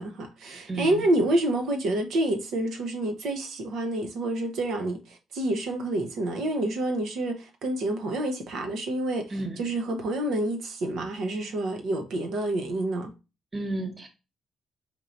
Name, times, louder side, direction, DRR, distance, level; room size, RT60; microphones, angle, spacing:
voice 1, 0.0-13.1, right 1 dB, 75° right, 0.8 m, -28 dB
voice 2, 0.7-1.0 9.3-9.7 13.5-14.1, right 2 dB, 25° right, 0.9 m, -32 dB
4.5 x 4.4 x 2.5 m
cardioid pair, 90°, 0 cm